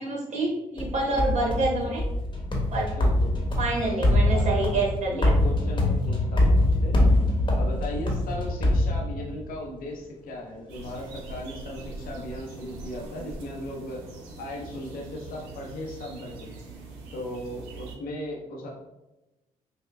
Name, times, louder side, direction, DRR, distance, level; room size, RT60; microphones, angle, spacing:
voice 1, 0.0-2.0 2.7-2.9 3.6-5.3, right 2 dB, 50° right, -2 dB, 1.2 m, -27 dB
sound 1, 0.8-9.6, left 1 dB, 30° left, 1.1 m, -24 dB
voice 2, 1.0-1.4 2.9-3.3 4.0-4.9 5.1-7.0 7.5-14.0 14.4-16.5 17.1-18.7, left 1 dB, 70° left, -1 dB, 0.8 m, -37 dB
sound 2, 10.7-18.0, right 2 dB, 90° right, 0.6 m, -42 dB
5.3 x 2.2 x 2.2 m, 0.99 s
supercardioid pair, 55°, 15 cm